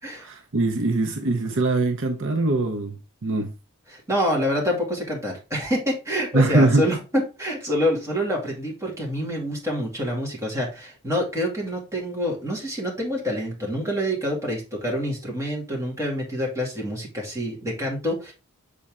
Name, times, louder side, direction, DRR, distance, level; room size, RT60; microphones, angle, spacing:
voice 1, 0.2-3.0 3.2-3.5 6.3-6.8, right 2 dB, 60° right, 0.7 m, -22 dB
voice 2, 3.9-18.3, equal, 15° right, 2.3 m, -27 dB
7.1 x 4.3 x 3.6 m
head